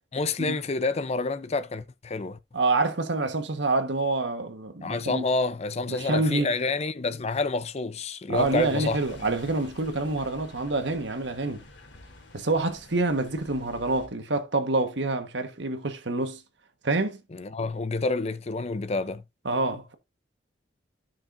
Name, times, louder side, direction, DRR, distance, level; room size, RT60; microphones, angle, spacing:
voice 1, 0.1-2.4 4.8-9.0 17.3-19.2, left 3 dB, 35° left, 0.5 m, -28 dB
voice 2, 2.5-5.2 5.9-6.5 8.3-11.6 12.3-16.4 16.8-17.2 19.4-19.9, right 2 dB, 70° right, 1.3 m, -27 dB
sound 1, 8.3-14.1, left 2 dB, 75° left, 2.6 m, -49 dB
13.0 x 6.0 x 2.5 m
head